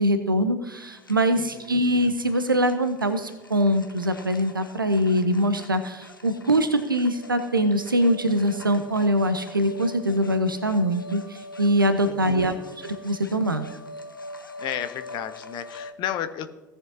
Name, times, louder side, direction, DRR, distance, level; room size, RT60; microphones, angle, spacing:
voice 1, 0.0-13.7, equal, 85° right, 10 dB, 0.6 m, -23 dB
sound 1, 0.8-15.9, left 2 dB, 85° left, 0.6 m, -43 dB
voice 2, 1.4-1.8 12.0-12.5 14.6-16.5, left 10 dB, 45° left, 11 dB, 0.8 m, -33 dB
17.5 x 6.9 x 2.8 m, 1.1 s
figure-of-eight pair, 70°, 11 cm